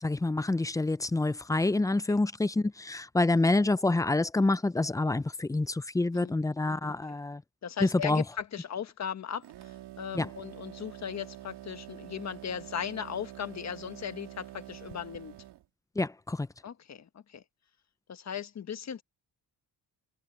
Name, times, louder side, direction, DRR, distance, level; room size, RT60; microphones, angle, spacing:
voice 1, 0.0-7.4 7.8-8.2 10.2-10.3 16.0-16.5, left 2 dB, 10° left, 0.5 m, -27 dB
voice 2, 1.9-2.2 6.1-6.3 6.9-7.2 7.6-15.4 16.6-17.4 18.1-19.0, left 8 dB, 45° left, 1.5 m, -38 dB
sound 1, 9.4-15.6, right 14 dB, 85° right, 2.7 m, -47 dB
cardioid pair, 125°, 39 cm